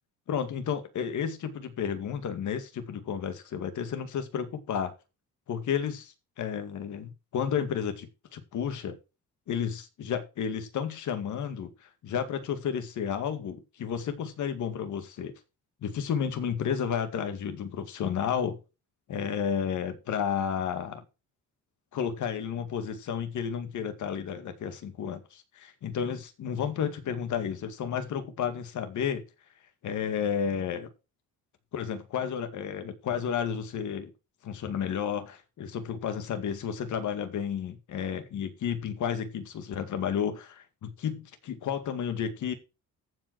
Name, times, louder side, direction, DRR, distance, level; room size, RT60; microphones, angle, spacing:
voice 1, 0.3-4.9 5.5-9.0 9.5-11.7 12.0-15.3 15.8-18.6 19.1-21.0 21.9-29.2 29.8-30.9 31.7-34.1 34.4-42.5, left 8 dB, 65° left, 2.1 m, -32 dB
14.5 x 5.2 x 4.7 m
cardioid pair, 120°, 33 cm